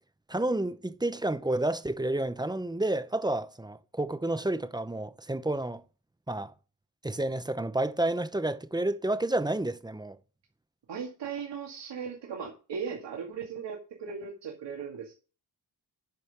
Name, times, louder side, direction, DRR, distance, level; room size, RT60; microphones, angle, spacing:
voice 1, 0.3-5.8 6.3-6.5 7.0-10.2, right 1 dB, 10° right, 0.8 m, -30 dB
voice 2, 10.9-15.2, right 6 dB, 85° right, 2.2 m, -38 dB
9.4 x 5.5 x 6.6 m
cardioid pair, 90°, 42 cm